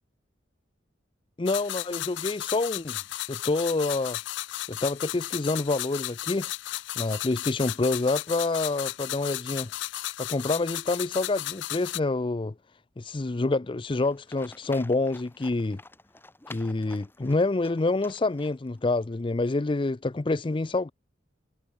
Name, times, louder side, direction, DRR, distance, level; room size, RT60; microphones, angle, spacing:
voice 1, 1.4-3.0 3.3-4.2 4.7-6.5 7.0-9.7 10.2-12.5 13.0-15.8 16.5-20.9, left 2 dB, 30° left, 0.5 m, -27 dB
sound 1, 1.5-12.0, left 15 dB, 85° left, 0.4 m, -35 dB
Livestock farm animals working animals, 14.0-18.9, left 2 dB, 10° left, 1.0 m, -50 dB
head